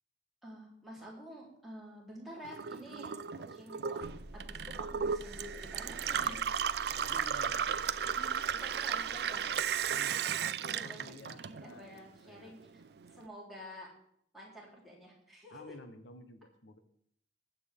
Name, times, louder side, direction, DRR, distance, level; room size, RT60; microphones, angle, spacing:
voice 1, 0.4-4.0 4.3-6.3 7.0-7.4 8.1-9.5 9.9-10.1 10.4-12.8 13.1-13.9 14.3-15.8, equal, ahead, -6 dB, 3.5 m, -50 dB
Gurgling / Water tap faucet / Sink (filling or washing), 2.4-12.0 12.3-13.2, right 7 dB, 55° right, 0.4 m, -35 dB
sound 1, 4.0-10.1, right 1 dB, 20° left, 2.2 m, -51 dB
voice 2, 6.1-6.5 7.0-8.0 9.9-10.4 10.8-12.0 12.2-12.5 15.5-16.8, left 2 dB, 85° left, 8 dB, 1.1 m, -52 dB
20.0 x 7.9 x 3.6 m, 0.69 s
head